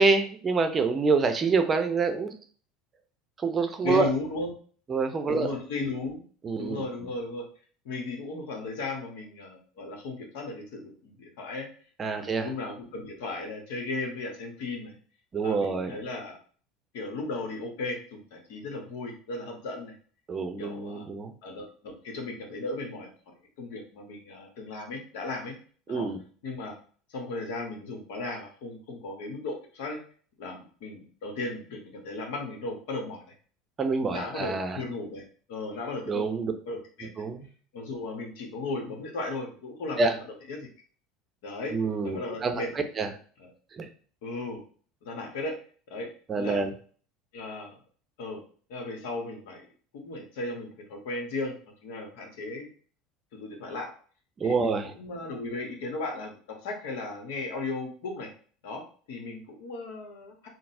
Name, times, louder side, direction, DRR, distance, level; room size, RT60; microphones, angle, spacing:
voice 1, 0.0-2.3 3.4-4.1 4.9-5.5 6.4-6.8 12.0-12.5 15.3-16.0 20.3-21.3 25.9-26.2 33.8-34.8 36.1-36.5 37.2-37.4 40.0-40.1 41.7-42.6 43.0-43.1 43.8-43.9 46.3-46.7 54.4-54.9, right 4 dB, 30° right, 7 dB, 0.5 m, -26 dB
voice 2, 3.8-4.5 5.3-6.2 6.6-7.4 7.8-11.7 12.1-15.0 15.4-16.4 16.9-19.9 20.6-21.0 21.4-23.1 23.6-25.5 25.9-26.1 26.4-26.7 27.1-30.0 30.4-33.2 34.1-37.1 37.7-40.2 40.5-40.7 41.4-41.8 42.0-42.9 43.4-43.5 44.2-44.6 45.0-45.6 45.9-46.1 46.4-46.6 47.3-47.7 48.2-48.4 48.7-49.7 49.9-51.5 51.8-52.7 53.3-53.9 54.4-56.4 56.6-58.3 58.6-58.8 59.1-60.5, left 2 dB, 70° left, 2 dB, 1.0 m, -36 dB
3.8 x 2.0 x 2.6 m, 0.44 s
hypercardioid pair, 80°, 0 cm